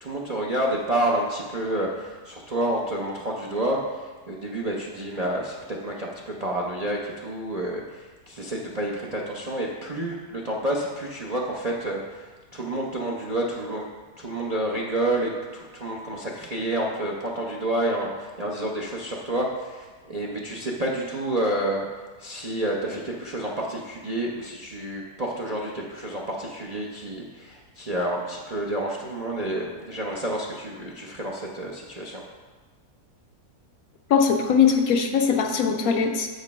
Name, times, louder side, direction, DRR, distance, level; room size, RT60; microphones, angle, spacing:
voice 1, 0.0-3.8 4.3-7.8 8.3-13.8 14.2-21.9 22.2-32.2, right 1 dB, 40° right, -2 dB, 0.5 m, -29 dB
voice 2, 34.1-36.3, left 6 dB, 65° left, 4 dB, 1.1 m, -21 dB
7.3 x 5.3 x 5.3 m, 1.4 s
omnidirectional pair, 1.7 m